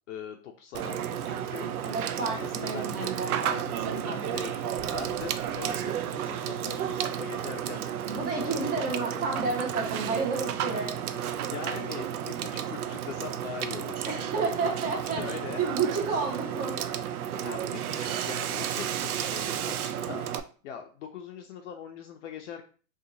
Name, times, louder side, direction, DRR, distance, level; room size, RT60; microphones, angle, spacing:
voice 1, 0.1-1.7 2.2-8.1 8.4-9.2 10.7-14.4 15.2-15.7 17.3-20.3 20.6-22.6, left 8 dB, 55° left, 4 dB, 0.5 m, -42 dB
Water / Water tap faucet / Sink (filling or washing), 0.7-20.4, right 9 dB, 75° right, 0.5 m, -32 dB
voice 2, 1.8-3.4 8.1-10.9 14.1-16.8, right 4 dB, 20° right, 0 dB, 0.8 m, -31 dB
Explosion, 4.8-6.4, right 2 dB, 60° right, 1.0 m, -49 dB
2.8 x 2.4 x 3.7 m, 0.39 s
hypercardioid pair, 145°, 44 cm